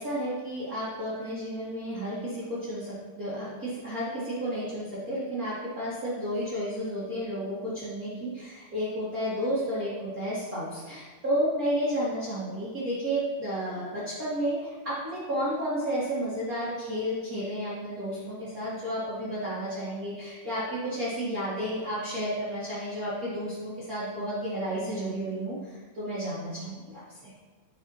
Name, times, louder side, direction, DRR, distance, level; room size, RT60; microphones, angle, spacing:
voice 1, 0.0-27.3, equal, 60° right, -10 dB, 0.9 m, -32 dB
9.5 x 5.0 x 2.8 m, 1.4 s
omnidirectional pair, 4.6 m